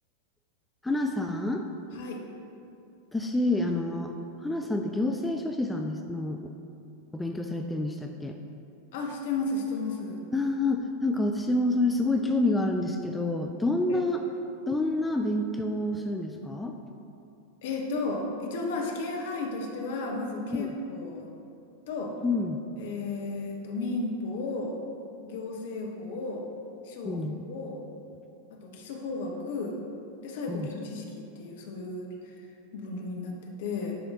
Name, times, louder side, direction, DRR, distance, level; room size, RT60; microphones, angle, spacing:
voice 1, 0.8-1.7 3.1-4.1 4.4-6.5 7.1-8.4 10.3-14.2 14.7-16.8 20.5-20.7 22.2-22.6 27.0-27.4 30.5-30.7, left 2 dB, 5° left, 3 dB, 0.3 m, -28 dB
voice 2, 1.9-2.2 8.9-10.2 13.9-14.0 17.6-21.3 21.9-22.1 22.8-24.8 25.2-26.5 26.8-27.8 28.5-29.8 30.2-32.1 32.7-33.9, left 3 dB, 55° left, 1 dB, 0.9 m, -34 dB
10.5 x 3.5 x 3.5 m, 2.6 s
figure-of-eight pair, 90°, 0 cm